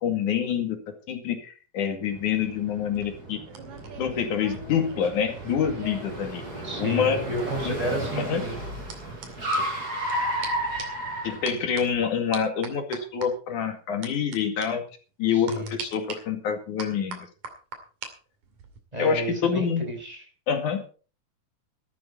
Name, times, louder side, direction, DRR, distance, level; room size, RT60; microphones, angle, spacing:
voice 1, 0.0-3.4 4.0-6.4 6.8-7.2 7.7-7.8 8.2-8.4 11.2-14.8 15.2-17.3 19.0-19.8 20.5-20.9, left 7 dB, 70° left, 5 dB, 3.6 m, -26 dB
Car, 2.2-12.0, right 1 dB, 30° right, 6.6 m, -33 dB
sound 1, 2.7-6.2 6.4-10.1 10.4-10.5 10.8-11.1 11.5-11.8 12.3-13.3 14.0-14.4 14.6-14.7 15.5-16.2 16.8-18.1 18.4-18.8, right 5 dB, 70° right, 3.8 m, -41 dB
voice 2, 6.6-8.6 15.3-15.7 18.9-20.3, right 1 dB, 10° right, 3 dB, 5.0 m, -31 dB
14.0 x 13.0 x 4.3 m, 0.38 s
omnidirectional pair, 3.6 m